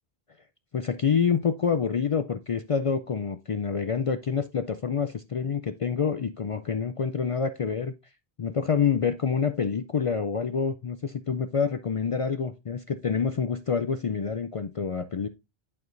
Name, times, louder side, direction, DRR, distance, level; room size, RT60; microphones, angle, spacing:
voice 1, 0.7-7.9 8.4-15.3, left 6 dB, 55° left, 0.4 m, -27 dB
11.0 x 4.7 x 2.5 m
omnidirectional pair, 1.0 m